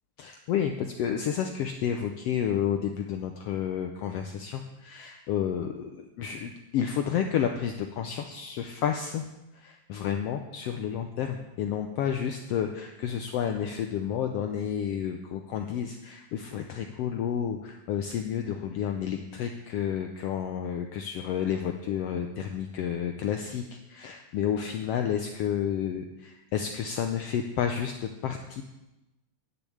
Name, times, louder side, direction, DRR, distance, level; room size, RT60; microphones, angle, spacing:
voice 1, 0.2-9.3 9.5-28.6, left 8 dB, 75° left, 5 dB, 1.5 m, -31 dB
10.0 x 7.0 x 8.6 m, 0.98 s
omnidirectional pair, 3.4 m